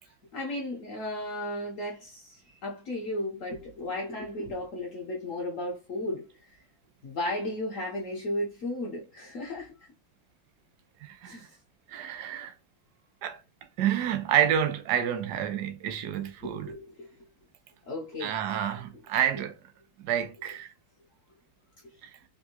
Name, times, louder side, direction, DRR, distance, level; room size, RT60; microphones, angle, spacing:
voice 1, 0.0-6.6 7.0-9.9 11.2-11.5 16.4-17.2 17.9-18.8 21.8-21.9, left 1 dB, 65° left, 0.8 m, -35 dB
voice 2, 11.0-11.4 11.9-12.5 13.2-13.4 13.8-16.7 18.2-19.5 20.0-20.7 22.0-22.1, right 10 dB, 75° right, 0.9 m, -29 dB
3.5 x 2.6 x 2.8 m
omnidirectional pair, 2.2 m